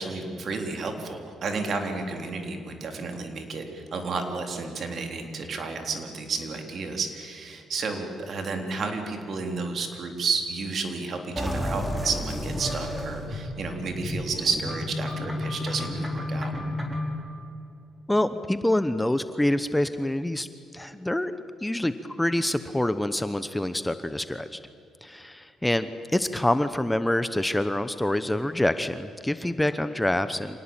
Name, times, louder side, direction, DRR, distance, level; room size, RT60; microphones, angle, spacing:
voice 1, 0.0-16.5, right 4 dB, 55° right, 4 dB, 3.7 m, -31 dB
sound 1, 11.3-17.1, left 1 dB, 10° right, 4.4 m, -31 dB
voice 2, 18.1-20.5 20.7-21.3 21.6-24.6 25.0-30.6, left 1 dB, 10° left, 11 dB, 0.9 m, -26 dB
26.0 x 18.5 x 9.0 m, 2.7 s
cardioid pair, 90°, 0 cm